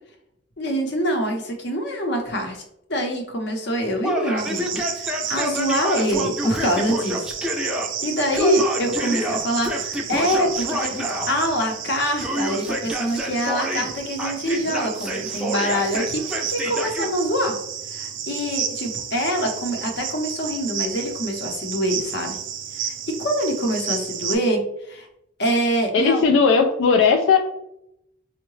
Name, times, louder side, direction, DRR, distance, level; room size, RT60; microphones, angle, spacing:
voice 1, 0.6-2.6 2.9-7.3 8.0-17.6 17.9-22.4 22.7-25.1 25.4-26.2, equal, 60° left, 3 dB, 0.7 m, -25 dB
Yell, 4.0-7.9 8.3-11.3 12.2-13.9 14.2-17.1, equal, 5° right, 0.4 m, -28 dB
Cricket, 4.4-24.3, right 8 dB, 80° right, 0.5 m, -32 dB
voice 2, 25.9-27.4, left 5 dB, 85° left, 3 dB, 0.3 m, -17 dB
4.5 x 2.1 x 3.1 m, 0.79 s
head